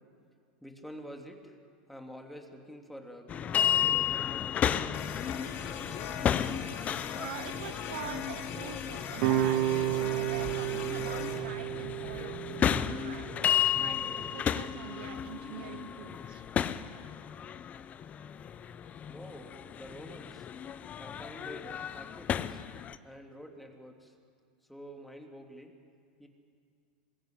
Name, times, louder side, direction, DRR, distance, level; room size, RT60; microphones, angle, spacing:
voice 1, 0.6-1.6 1.9-4.7 19.1-20.5 21.0-22.6 23.0-24.1 24.7-25.8 26.2-26.3, equal, ahead, 3 dB, 3.2 m, -48 dB
sound 1, 3.3-23.0, left 9 dB, 30° left, 0.8 m, -33 dB
sound 2, 4.9-11.4, left 7 dB, 50° left, 3.3 m, -41 dB
voice 2, 7.1-13.3 13.8-16.4, right 10 dB, 75° right, 12 dB, 1.2 m, -45 dB
sound 3, 9.2-14.3, right 14 dB, 55° right, 1.6 m, -32 dB
26.0 x 21.5 x 8.8 m, 2.3 s
hypercardioid pair, 115°, 5 cm